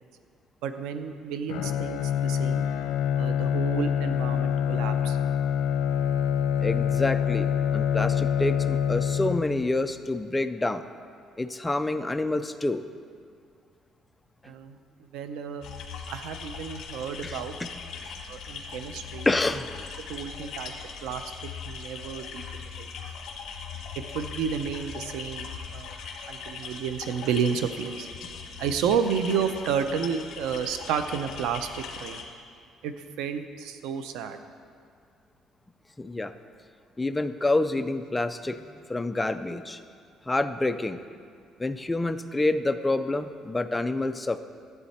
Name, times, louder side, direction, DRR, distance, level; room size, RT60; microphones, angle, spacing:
voice 1, 0.6-2.6 3.1-5.2 14.4-15.6 16.1-17.6 18.3-19.3 20.1-21.3 21.6-22.9 24.1-25.9 26.2-28.1 28.6-32.3 32.8-34.4, right 7 dB, 85° right, 9 dB, 0.6 m, -31 dB
Bowed string instrument, 1.5-9.8, left 8 dB, 85° left, 0.6 m, -26 dB
voice 2, 6.6-10.8 11.4-12.8 17.2-17.7 18.0-18.1 19.3-19.7 36.0-36.3 37.0-39.8 40.3-41.0 41.6-44.4, left 2 dB, 10° left, 9 dB, 0.4 m, -28 dB
sound 1, 15.6-32.2, left 6 dB, 60° left, 1.3 m, -40 dB
12.5 x 8.2 x 4.3 m, 2.2 s
cardioid pair, 130°, 0 cm